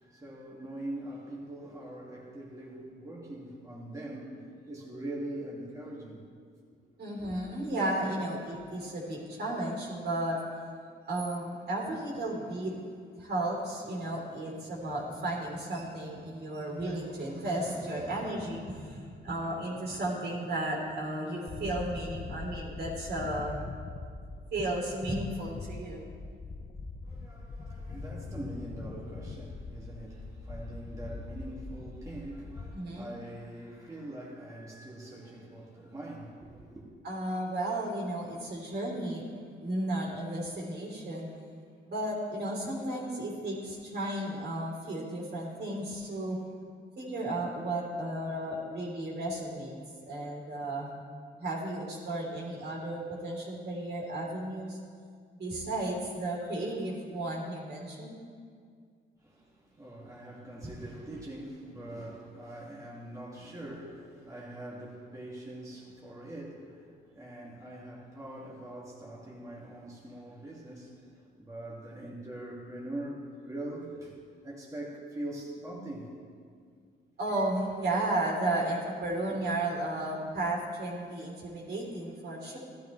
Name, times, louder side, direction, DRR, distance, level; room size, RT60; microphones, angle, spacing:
voice 1, 0.0-6.2 7.2-7.4 27.0-36.9 59.2-76.1 79.3-79.5, right 1 dB, 15° right, 2.2 m, -43 dB
voice 2, 7.0-10.4 11.1-12.8 13.1-23.6 24.5-26.1 32.7-33.1 37.0-39.2 39.6-41.3 41.9-46.4 47.0-49.8 50.0-51.0 51.4-54.8 55.3-58.2 60.6-60.7 77.2-82.6, right 1 dB, 55° right, 3.5 m, -34 dB
sound 1, 21.5-32.7, left 3 dB, 30° left, 0.8 m, -42 dB
15.5 x 12.0 x 3.2 m
cardioid pair, 90°, 20 cm